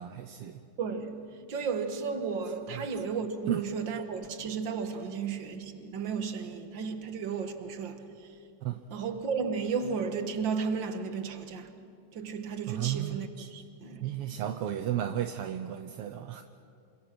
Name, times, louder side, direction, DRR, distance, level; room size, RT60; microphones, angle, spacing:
voice 1, 0.0-0.6 2.4-2.9 3.5-3.6 6.8-6.9 8.6-8.8 12.7-13.5 14.0-16.4, right 11 dB, 70° right, 1.4 m, -34 dB
voice 2, 0.8-8.4 8.9-11.7 12.1-14.4, right 5 dB, 45° right, 1.9 m, -34 dB
28.0 x 26.0 x 6.1 m
omnidirectional pair, 3.4 m